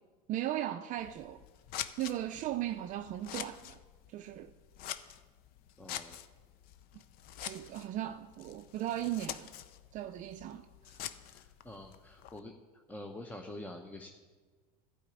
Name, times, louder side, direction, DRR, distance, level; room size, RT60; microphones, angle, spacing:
voice 1, 0.3-1.4 2.0-3.8 4.1-4.5 7.4-9.5 9.9-11.0, right 13 dB, 45° right, 0.5 m, -37 dB
Scissors, 1.0-12.4, left 11 dB, 55° left, 0.6 m, -46 dB
voice 2, 5.8-6.2 11.3-12.5 12.9-14.1, left 1 dB, 10° left, 0.8 m, -46 dB
12.0 x 5.0 x 8.4 m
supercardioid pair, 110°, 19 cm